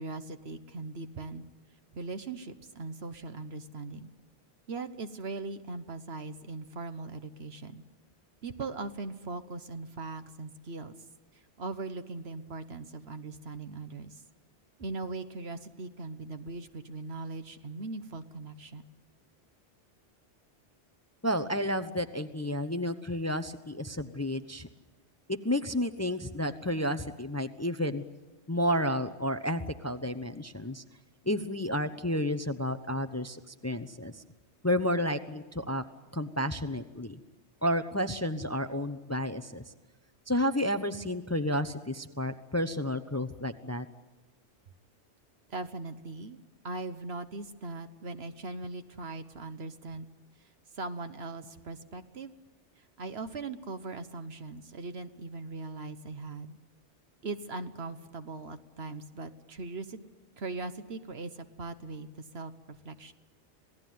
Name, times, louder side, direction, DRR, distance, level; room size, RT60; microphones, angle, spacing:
voice 1, 0.0-1.4 1.9-4.1 4.7-7.8 8.4-11.0 11.3-14.2 14.8-18.8 45.5-46.4 46.6-50.1 50.7-52.3 53.0-56.6 57.2-60.0 60.4-63.1, right 3 dB, 60° right, 10 dB, 1.4 m, -40 dB
voice 2, 21.2-24.7 25.3-28.0 28.5-30.8 31.3-34.2 34.6-35.8 36.1-37.2 37.6-39.6 40.3-43.9, equal, 15° left, 9 dB, 0.7 m, -31 dB
27.0 x 18.0 x 9.4 m, 1.2 s
omnidirectional pair, 1.2 m